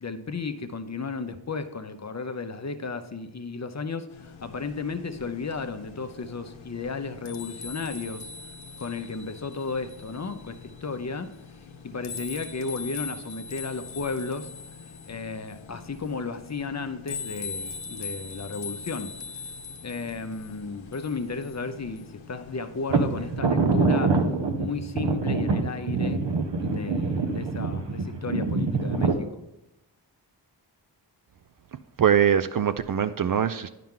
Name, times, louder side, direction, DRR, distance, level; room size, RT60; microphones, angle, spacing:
voice 1, 0.0-8.3 8.8-14.5 15.1-19.1 19.8-24.2 24.6-26.3 26.6-29.4, left 4 dB, 35° left, 0.7 m, -34 dB
sound 1, 4.1-23.4, left 4 dB, 70° left, 0.9 m, -41 dB
sound 2, 22.9-29.1, right 3 dB, 60° right, 0.9 m, -25 dB
voice 2, 32.0-33.7, right 8 dB, 45° right, 0.4 m, -22 dB
9.2 x 5.8 x 3.7 m
cardioid pair, 40°, 47 cm